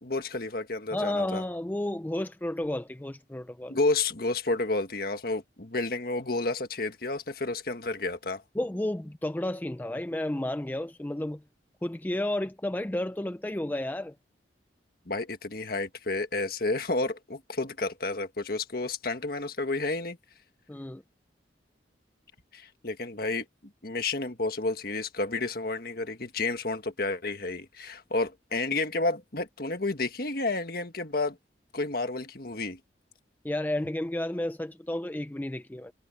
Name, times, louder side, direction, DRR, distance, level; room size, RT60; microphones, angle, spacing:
voice 1, 0.0-1.4 3.7-8.4 15.1-20.2 22.5-23.4 23.8-31.4 31.7-32.8, left 3 dB, 55° left, 1.7 m, -31 dB
voice 2, 0.9-3.8 8.6-11.4 11.8-14.1 20.7-21.0 33.4-35.9, left 1 dB, 10° left, 0.4 m, -32 dB
head